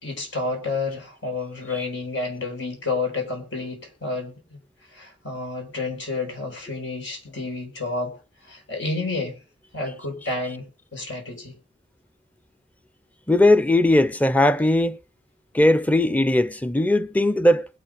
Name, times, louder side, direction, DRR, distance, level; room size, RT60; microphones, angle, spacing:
voice 1, 0.0-4.6 4.9-8.1 8.4-9.4 9.7-11.5, left 3 dB, 80° left, 4.5 m, -30 dB
voice 2, 13.3-15.0 15.5-17.7, left 1 dB, 10° left, 0.6 m, -18 dB
21.0 x 8.2 x 5.0 m
head